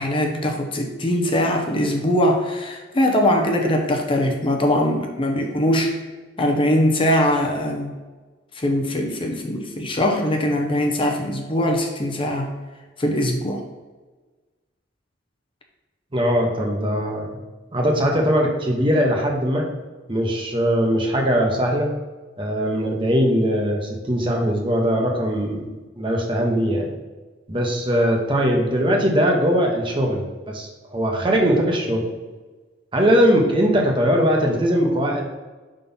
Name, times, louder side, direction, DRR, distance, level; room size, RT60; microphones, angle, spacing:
voice 1, 0.0-6.0 6.4-7.9 8.5-12.5 13.0-13.6, left 1 dB, 30° left, 2 dB, 0.7 m, -21 dB
voice 2, 16.1-17.4 17.7-19.7 20.1-21.9 22.4-26.9 27.5-32.0 32.9-35.2, equal, 25° right, 0 dB, 1.1 m, -20 dB
5.6 x 3.8 x 5.5 m, 1.3 s
head